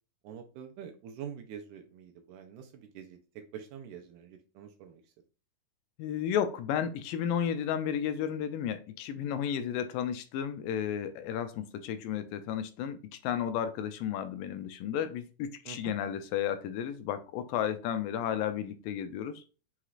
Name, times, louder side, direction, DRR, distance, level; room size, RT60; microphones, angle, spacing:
voice 1, 0.2-3.2 3.5-5.0 15.7-15.9, right 8 dB, 80° right, 5 dB, 1.9 m, -45 dB
voice 2, 6.0-19.4, left 9 dB, 85° left, 9 dB, 2.2 m, -33 dB
5.7 x 3.1 x 2.4 m, 0.35 s
omnidirectional pair, 3.9 m